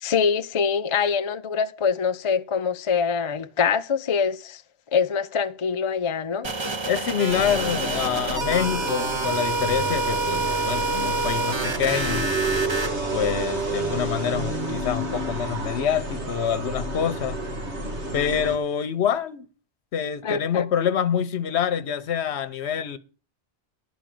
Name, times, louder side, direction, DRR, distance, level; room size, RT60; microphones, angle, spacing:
voice 1, 0.0-4.6 4.9-6.5 20.2-20.6, left 6 dB, 45° left, 0.4 m, -24 dB
sound 1, 6.4-12.9, right 3 dB, 30° right, 0.8 m, -27 dB
voice 2, 6.9-12.2 13.1-17.4 18.1-19.4 19.9-23.0, left 8 dB, 80° left, 1.0 m, -26 dB
sound 2, 7.3-18.6, right 2 dB, 90° right, 2.0 m, -30 dB
11.0 x 5.2 x 7.6 m
omnidirectional pair, 1.1 m